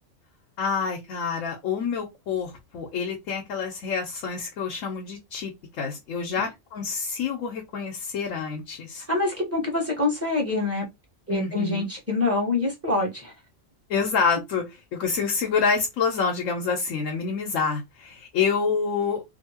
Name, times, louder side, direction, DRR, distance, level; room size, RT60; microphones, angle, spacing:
voice 1, 0.6-5.5 5.8-9.0 11.3-11.9 13.9-14.6 14.9-19.2, left 5 dB, 85° left, 1.1 m, -27 dB
voice 2, 9.1-10.9 11.3-13.3, left 2 dB, 15° right, 1.0 m, -25 dB
2.7 x 2.6 x 2.8 m
omnidirectional pair, 1.3 m